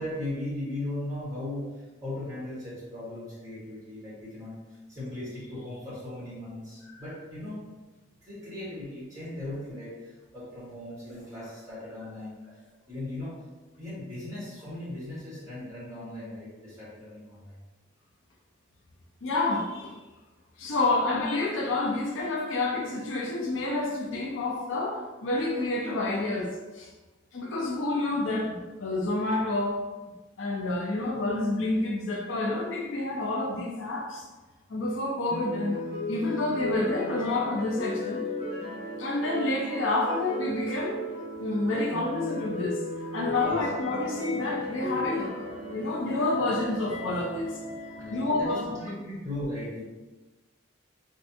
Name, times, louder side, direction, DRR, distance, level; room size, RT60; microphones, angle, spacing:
voice 1, 0.0-1.7 2.0-7.6 8.2-12.6 12.9-13.3 13.8-17.6 43.3-43.6 48.0-49.8, left 1 dB, 15° right, -10 dB, 1.5 m, -38 dB
voice 2, 19.2-19.9 20.6-26.9 27.3-29.8 30.4-34.2 34.7-35.8 36.1-38.3 39.0-41.0 41.4-42.8 43.1-47.6 48.1-48.7, left 2 dB, 75° left, 0 dB, 0.5 m, -29 dB
sound 1, 35.3-48.5, left 1 dB, 45° right, 1.1 m, -35 dB
3.2 x 2.7 x 2.7 m, 1.2 s
head